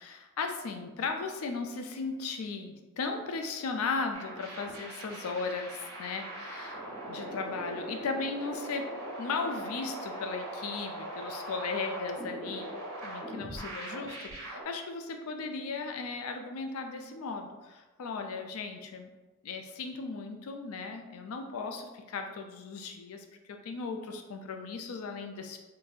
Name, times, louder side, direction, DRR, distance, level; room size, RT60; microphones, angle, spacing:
voice 1, 0.0-8.9 9.2-12.7 13.0-19.1 19.4-23.2 23.6-25.6, left 4 dB, 80° left, 5 dB, 0.4 m, -36 dB
sound 1, 4.1-14.6, right 1 dB, 80° right, 0.9 m, -41 dB
3.7 x 2.7 x 2.4 m, 1.2 s
head